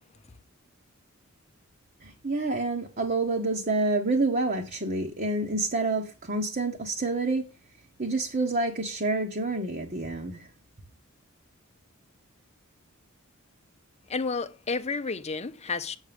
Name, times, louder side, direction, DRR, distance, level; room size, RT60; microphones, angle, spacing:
voice 1, 2.0-7.5 8.0-10.5, right 2 dB, 40° right, 1.2 m, -28 dB
voice 2, 14.1-16.0, left 4 dB, 30° left, 0.7 m, -31 dB
8.2 x 7.4 x 5.2 m
head